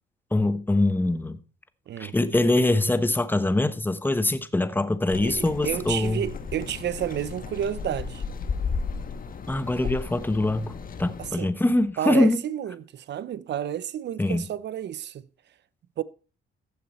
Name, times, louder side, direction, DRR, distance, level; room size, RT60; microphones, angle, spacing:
voice 1, 0.3-1.4 2.0-6.2 9.5-10.7 11.0-12.4 14.2-14.4, left 2 dB, 10° left, 1.1 m, -23 dB
sound 1, 5.1-11.3, left 5 dB, 45° left, 1.4 m, -34 dB
voice 2, 5.2-8.2 9.8-9.9 11.2-11.5 12.0-15.2 16.0-16.1, right 10 dB, 60° right, 0.8 m, -31 dB
15.0 x 7.0 x 4.3 m
cardioid pair, 90°, 20 cm